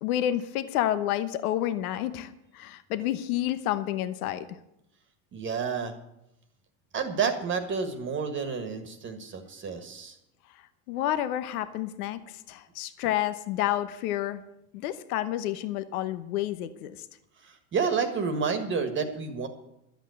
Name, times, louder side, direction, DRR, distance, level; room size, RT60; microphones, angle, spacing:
voice 1, 0.0-4.6 10.9-14.4 14.7-17.1, left 12 dB, 85° left, 12 dB, 1.1 m, -30 dB
voice 2, 5.3-5.9 6.9-10.2 17.4-19.5, right 5 dB, 25° right, 8 dB, 1.5 m, -30 dB
12.5 x 8.2 x 8.0 m, 0.84 s
supercardioid pair, 145°, 43 cm